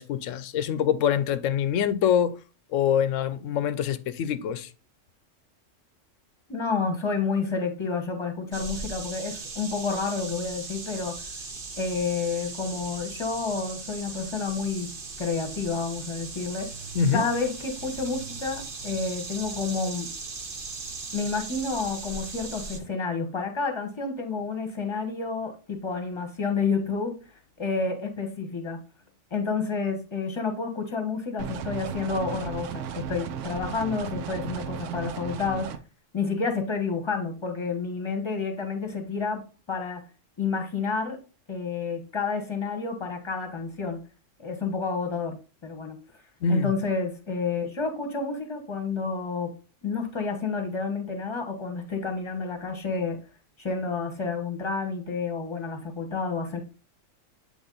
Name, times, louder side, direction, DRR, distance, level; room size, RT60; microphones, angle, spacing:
voice 1, 0.0-2.4 2.7-4.7 16.9-17.2 46.4-46.7, left 8 dB, 80° left, 0.9 m, -25 dB
voice 2, 6.5-11.1 11.8-14.9 15.2-16.7 17.1-20.1 21.1-27.1 27.6-28.8 29.3-35.7 36.1-39.4 39.7-40.0 40.4-41.2 41.5-44.0 44.4-45.4 45.6-46.0 46.5-49.5 49.8-53.2 53.6-56.6, left 4 dB, 25° left, 1.0 m, -29 dB
sound 1, 8.5-22.8, right 4 dB, 45° right, 1.1 m, -38 dB
sound 2, 31.4-35.8, right 8 dB, 75° right, 0.9 m, -35 dB
8.1 x 3.3 x 3.8 m
omnidirectional pair, 1.3 m